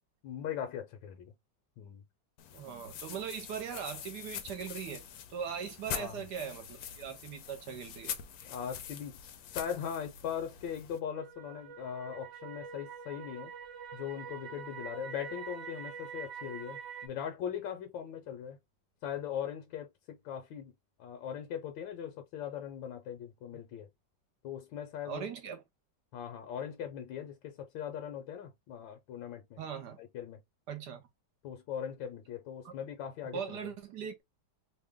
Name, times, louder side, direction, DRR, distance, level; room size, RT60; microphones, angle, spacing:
voice 1, 0.2-1.3 1.8-2.0 5.9-6.2 8.4-9.2 9.5-13.5 13.9-18.6 19.0-20.7 21.0-23.9 24.4-25.3 26.1-29.6 30.0-30.4 31.4-33.6, left 9 dB, 85° left, 1.4 m, -40 dB
sound 1, 2.4-11.0, left 8 dB, 70° left, 1.0 m, -44 dB
voice 2, 2.5-5.0 5.3-8.2 25.0-25.6 29.6-30.0 30.7-31.0 32.6-32.7 33.3-34.2, right 7 dB, 70° right, 1.2 m, -40 dB
sound 2, 11.1-17.1, right 7 dB, 45° right, 1.0 m, -45 dB
3.3 x 2.2 x 3.4 m
omnidirectional pair, 2.0 m